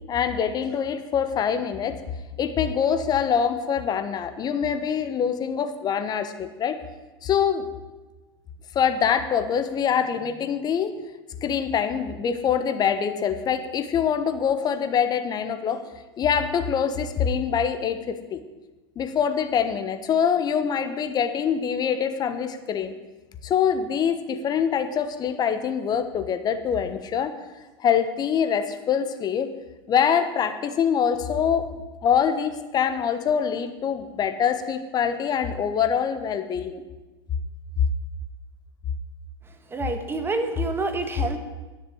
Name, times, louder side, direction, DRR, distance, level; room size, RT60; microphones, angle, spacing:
voice 1, 0.1-2.0 2.4-6.8 7.2-7.6 8.7-10.9 11.4-15.8 16.2-18.4 19.0-22.9 23.4-27.3 27.8-29.5 29.9-31.7 32.0-36.8, left 7 dB, 30° left, 9 dB, 1.2 m, -24 dB
voice 2, 39.7-41.4, right 2 dB, 15° right, 7 dB, 1.4 m, -27 dB
10.5 x 6.8 x 8.0 m, 1.2 s
hypercardioid pair, 95°, 13 cm